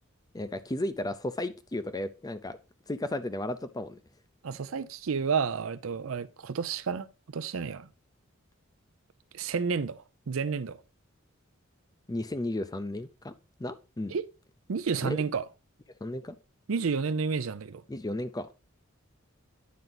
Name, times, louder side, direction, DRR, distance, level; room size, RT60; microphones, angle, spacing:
voice 1, 0.3-2.6 2.9-4.0 12.1-13.3 13.6-14.1 15.0-15.2 16.0-16.3 17.9-18.5, left 1 dB, 20° left, 0.5 m, -34 dB
voice 2, 4.4-7.1 7.3-7.9 9.3-10.8 14.1-14.3 14.7-15.4 16.7-17.8, right 5 dB, 75° right, 0.5 m, -30 dB
9.4 x 4.6 x 3.9 m
head